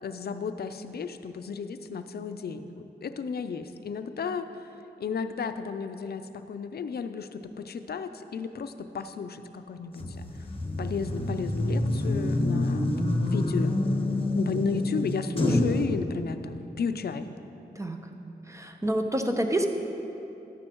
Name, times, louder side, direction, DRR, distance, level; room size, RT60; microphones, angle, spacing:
voice 1, 0.0-4.7 5.0-10.3 10.8-13.8 14.3-17.3, left 5 dB, 65° left, 9 dB, 0.5 m, -33 dB
sound 1, 10.0-15.8, left 1 dB, 30° left, 1.2 m, -27 dB
voice 2, 18.5-19.7, right 1 dB, 15° right, 4 dB, 0.9 m, -27 dB
13.0 x 9.7 x 3.0 m, 3.0 s
cardioid pair, 60°, 18 cm